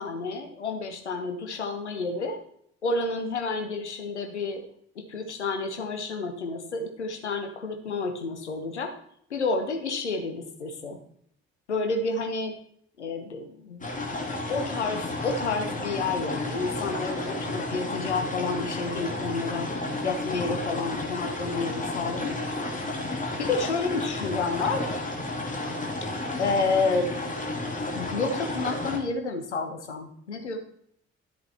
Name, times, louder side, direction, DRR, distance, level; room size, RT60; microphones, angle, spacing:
voice 1, 0.0-2.4 2.8-4.6 4.9-8.9 9.3-11.0 11.7-12.5 13.0-13.9 14.5-19.7 20.0-22.7 23.4-24.8 26.4-27.2 27.9-30.6, left 3 dB, 80° left, 5 dB, 1.1 m, -30 dB
sound 1, 13.8-29.0, left 2 dB, 25° left, 3.0 m, -32 dB
12.5 x 7.7 x 4.3 m, 0.68 s
figure-of-eight pair, 45°, 34 cm